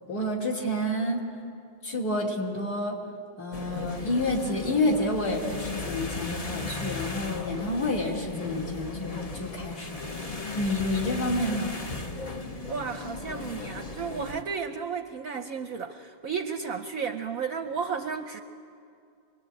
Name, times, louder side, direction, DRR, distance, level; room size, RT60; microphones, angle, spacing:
voice 1, 0.1-1.2 1.8-3.0 3.4-10.3 10.6-11.7, left 1 dB, 45° left, -2 dB, 3.3 m, -29 dB
sound 1, 3.5-14.4, left 3 dB, 60° left, 0.3 m, -36 dB
voice 2, 12.7-18.4, right 6 dB, 60° right, 8 dB, 1.0 m, -33 dB
25.0 x 20.0 x 9.0 m, 2.5 s
omnidirectional pair, 2.2 m